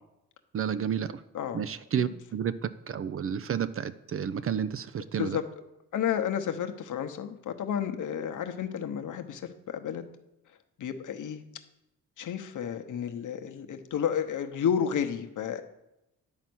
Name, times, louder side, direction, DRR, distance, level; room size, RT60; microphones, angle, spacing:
voice 1, 0.5-1.2 1.5-5.4, right 8 dB, 40° right, 14 dB, 0.5 m, -31 dB
voice 2, 5.9-10.1 10.8-11.4 12.2-15.6, left 8 dB, 60° left, 6 dB, 1.0 m, -31 dB
10.5 x 4.2 x 6.2 m, 0.91 s
supercardioid pair, 70°, 35 cm